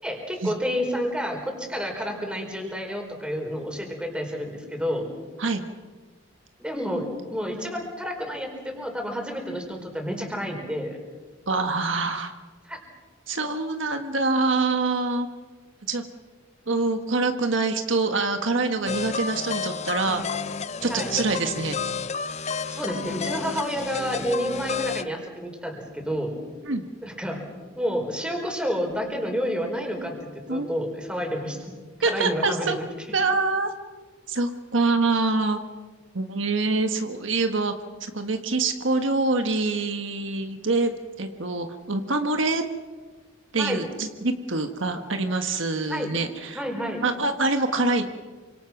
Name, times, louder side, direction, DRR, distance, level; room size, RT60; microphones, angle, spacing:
voice 1, 0.0-5.1 6.6-11.0 12.6-12.8 20.9-21.1 22.6-26.3 27.0-27.5 27.7-31.7 32.0-32.8 43.6-43.8 45.9-46.1 46.5-47.0, equal, 5° right, 2 dB, 4.8 m, -30 dB
voice 2, 11.5-12.3 13.3-15.3 15.9-16.0 16.7-20.2 20.8-21.9 26.7-26.8 30.5-30.7 32.0-32.8 33.1-33.7 34.3-35.6 36.1-37.7 38.0-40.9 41.2-42.6 43.5-46.6 47.0-48.0, right 3 dB, 70° right, 6 dB, 1.6 m, -25 dB
sound 1, 18.9-25.0, left 5 dB, 35° left, 0.7 m, -31 dB
28.5 x 25.5 x 6.0 m, 1.4 s
head